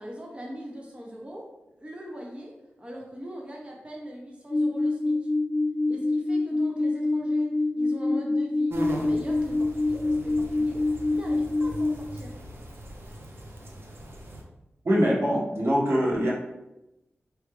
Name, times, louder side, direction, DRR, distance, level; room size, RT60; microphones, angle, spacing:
voice 1, 0.0-1.5 1.8-5.3 5.9-12.4, equal, 25° right, -1 dB, 0.8 m, -41 dB
sound 1, 4.5-11.9, left 2 dB, 35° left, 0.4 m, -26 dB
sound 2, 8.7-14.4, right 1 dB, 60° right, 0.8 m, -39 dB
voice 2, 14.8-16.3, equal, 80° right, -6 dB, 1.4 m, -23 dB
4.5 x 3.4 x 3.2 m, 0.93 s
wide cardioid pair, 70°, 4 cm